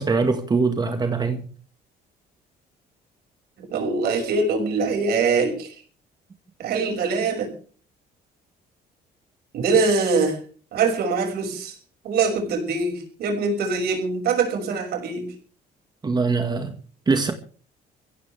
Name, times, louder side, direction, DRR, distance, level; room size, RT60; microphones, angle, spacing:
voice 1, 0.0-1.5 16.0-16.8 17.1-17.3, right 4 dB, 25° right, 1.8 m, -22 dB
voice 2, 3.6-5.7 6.6-7.5 9.5-10.4 10.7-11.8 12.0-15.3, right 4 dB, 70° right, 6.1 m, -23 dB
23.5 x 16.0 x 3.5 m
cardioid pair, 110°, 17 cm